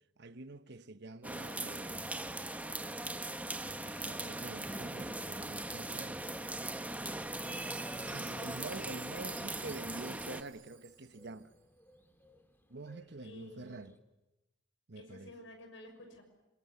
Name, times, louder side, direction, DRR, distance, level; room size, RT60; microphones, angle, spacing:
voice 1, 0.2-2.0 3.6-6.3 8.0-11.5 12.7-13.9 14.9-15.3, right 2 dB, 60° right, 1.2 m, -47 dB
sound 1, 1.2-14.0, right 1 dB, 10° left, 2.1 m, -63 dB
sound 2, 1.2-10.4, right 1 dB, 10° right, 1.2 m, -40 dB
Chime, 7.4-11.4, right 11 dB, 75° right, 4.8 m, -54 dB
voice 2, 13.2-13.8 15.0-16.2, left 1 dB, 80° left, 6.4 m, -52 dB
26.5 x 23.5 x 9.6 m
head